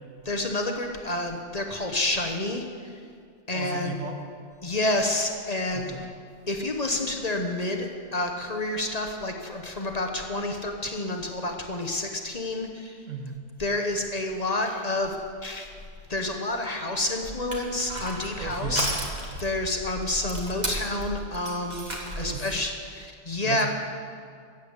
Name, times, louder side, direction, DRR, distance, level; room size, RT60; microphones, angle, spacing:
voice 1, 0.2-3.0 3.5-4.0 4.6-5.9 6.5-13.1 13.6-15.2 15.4-15.7 16.1-18.9 19.4-23.7, left 2 dB, 35° left, 3 dB, 1.1 m, -29 dB
voice 2, 3.5-4.2 5.7-6.1 13.1-13.4 18.4-18.9 22.2-22.5 23.4-23.7, right 4 dB, 80° right, 3 dB, 1.7 m, -35 dB
Crushing, 17.2-22.4, right 1 dB, 35° right, 1.9 m, -34 dB
13.5 x 8.3 x 8.1 m, 2.2 s
omnidirectional pair, 1.3 m